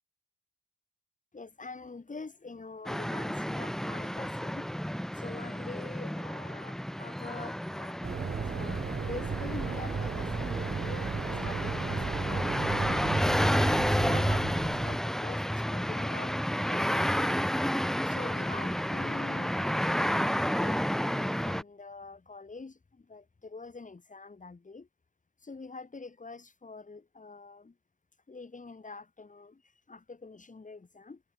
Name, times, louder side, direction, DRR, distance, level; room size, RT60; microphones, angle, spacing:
voice 1, 1.3-4.7 5.1-8.1 8.5-17.4 18.0-24.9 25.4-27.7 28.3-29.6 29.9-31.2, left 3 dB, 25° left, 6.0 m, -45 dB
sound 1, 2.9-21.6, equal, ahead, 1.3 m, -31 dB
sound 2, 8.0-15.0, right 6 dB, 30° right, 1.0 m, -35 dB
cardioid pair, 90°, 30 cm